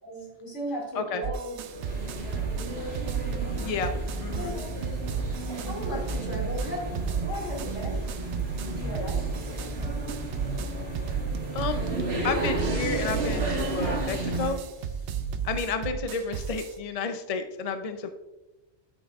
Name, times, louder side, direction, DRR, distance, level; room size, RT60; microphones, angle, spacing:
voice 1, 0.0-1.6 4.3-4.7 5.1-5.2 5.7-9.7, equal, 75° left, -2 dB, 2.8 m, -37 dB
sound 1, 1.2-16.7, right 7 dB, 75° right, 0.9 m, -33 dB
sound 2, 1.7-14.6, right 2 dB, 60° right, 1.8 m, -32 dB
voice 2, 3.6-3.9 4.2-4.5 11.5-11.8 12.2-14.6 15.4-18.1, left 4 dB, 45° left, 8 dB, 0.5 m, -31 dB
12.0 x 6.2 x 2.4 m, 1.0 s
omnidirectional pair, 1.2 m